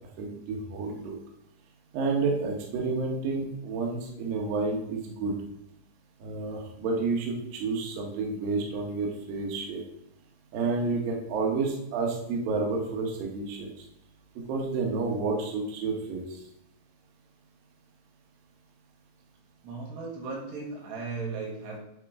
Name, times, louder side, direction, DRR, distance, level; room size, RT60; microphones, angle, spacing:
voice 1, 0.2-1.1 1.9-5.3 6.2-9.8 10.5-13.7 14.5-16.2, right 4 dB, 80° right, 0 dB, 2.0 m, -30 dB
voice 2, 19.6-21.8, right 4 dB, 65° right, -1 dB, 3.4 m, -36 dB
10.5 x 5.0 x 3.6 m, 0.79 s
omnidirectional pair, 5.8 m